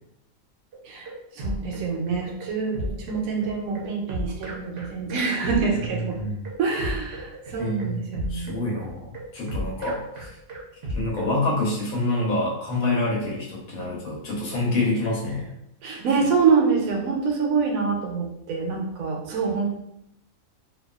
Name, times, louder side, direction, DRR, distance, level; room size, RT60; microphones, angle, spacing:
sound 1, 0.7-11.3, equal, 60° right, 0.7 m, -34 dB
voice 1, 1.3-6.2 6.6-8.7 15.8-19.7, right 5 dB, 80° right, 1 dB, 1.0 m, -25 dB
voice 2, 5.9-6.4 7.6-8.0 8.3-10.3 10.9-15.5, left 2 dB, 90° left, -3 dB, 1.2 m, -27 dB
2.6 x 2.2 x 2.3 m, 0.80 s
omnidirectional pair, 1.5 m